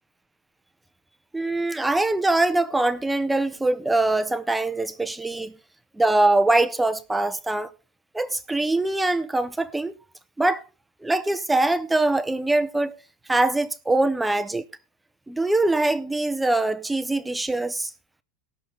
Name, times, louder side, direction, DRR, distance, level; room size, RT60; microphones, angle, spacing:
voice 1, 1.3-5.5 6.0-7.7 8.1-10.0 10.4-10.6 11.0-13.0 13.3-14.6 15.3-17.9, right 2 dB, 5° right, 0.5 m, -23 dB
18.5 x 6.5 x 3.9 m
supercardioid pair, 170°, 0 cm